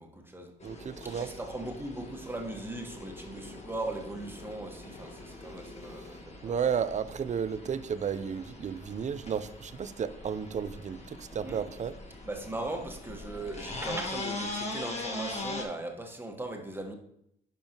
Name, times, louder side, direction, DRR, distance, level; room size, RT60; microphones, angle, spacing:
voice 1, 0.0-0.5 1.0-6.5 11.4-11.7 12.2-16.9, right 2 dB, 10° right, 1.4 m, -39 dB
sound 1, 0.6-15.6, left 2 dB, 35° left, 1.5 m, -42 dB
voice 2, 0.6-1.3 6.4-11.9, right 7 dB, 35° right, 0.5 m, -33 dB
10.0 x 5.3 x 2.9 m
cardioid pair, 90°, 20 cm